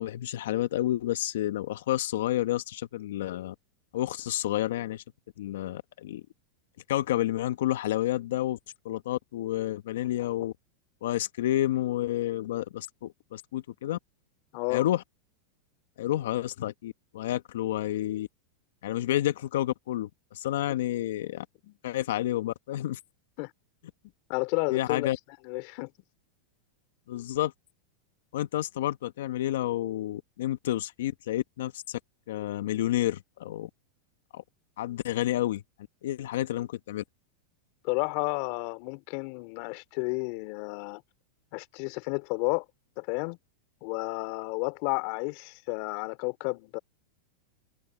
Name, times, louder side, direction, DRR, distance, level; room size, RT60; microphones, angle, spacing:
voice 1, 0.0-3.5 3.9-5.0 5.4-6.2 6.9-8.6 8.8-10.5 11.0-14.0 14.7-15.0 16.0-18.3 18.8-21.4 21.8-23.0 24.7-25.2 27.1-27.5 28.3-32.0 32.3-33.7 34.3-34.4 34.8-35.6 36.0-37.0, left 13 dB, 75° left, 1.3 m, -30 dB
voice 2, 14.5-14.9 21.6-21.8 23.4-23.5 24.3-25.1 25.4-25.9 37.8-41.0 41.5-42.6 43.0-43.4 43.8-46.8, left 29 dB, 55° left, 3.2 m, -31 dB
hypercardioid pair, 115°, 0 cm